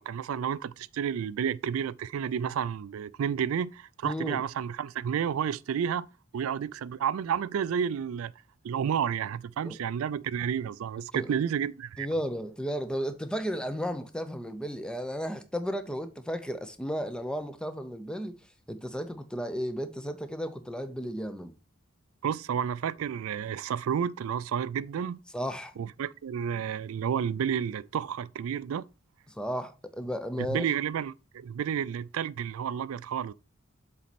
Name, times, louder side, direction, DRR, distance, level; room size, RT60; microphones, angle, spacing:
voice 1, 0.0-6.1 6.3-8.3 8.6-12.1 22.2-25.2 25.8-28.9 30.4-33.3, right 8 dB, 75° right, 0.3 m, -31 dB
voice 2, 4.0-4.4 9.6-9.8 11.1-11.3 12.0-18.4 18.7-21.5 25.3-25.7 29.4-30.7, equal, 5° left, 0.5 m, -34 dB
7.4 x 4.2 x 4.1 m
head